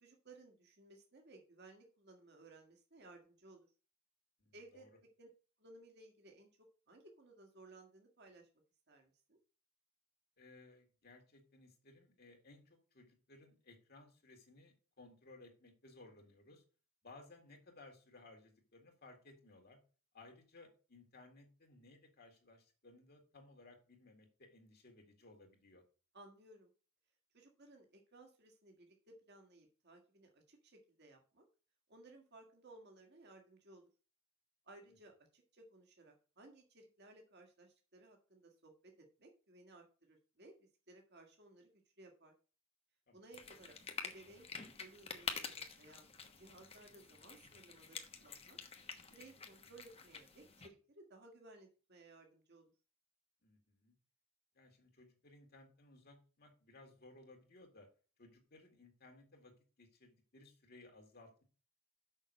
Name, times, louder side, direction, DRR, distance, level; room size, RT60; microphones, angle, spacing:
voice 1, 0.0-3.7 4.5-5.3 5.6-6.5 6.9-8.5 8.9-9.4 26.1-26.7 27.3-31.5 31.9-33.9 34.7-42.3 43.1-46.1 46.4-48.6 49.1-52.7, right 2 dB, 55° right, 2 dB, 1.9 m, -60 dB
voice 2, 4.4-4.9 10.4-16.6 17.0-19.8 20.1-25.8 43.1-43.2 53.4-53.9 54.5-57.9 58.2-59.5 59.8-61.4, left 2 dB, 50° left, 3 dB, 2.2 m, -60 dB
sound 1, 43.3-50.7, left 5 dB, 30° left, 1.1 m, -48 dB
6.5 x 5.6 x 6.5 m, 0.36 s
head